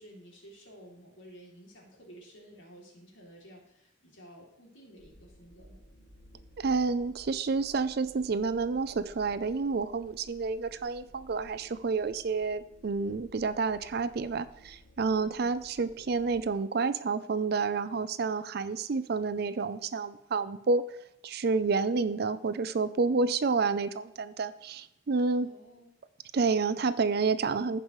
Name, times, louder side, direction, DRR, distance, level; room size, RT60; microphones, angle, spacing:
voice 1, 0.0-5.8 15.2-15.5 25.4-25.9, equal, 75° left, -2 dB, 2.9 m, -53 dB
sound 1, 5.0-16.5, equal, 50° left, 1.8 m, -56 dB
voice 2, 6.6-20.9 21.2-25.5 26.3-27.8, right 4 dB, 55° right, 13 dB, 0.5 m, -29 dB
15.0 x 5.4 x 3.1 m, 0.83 s
head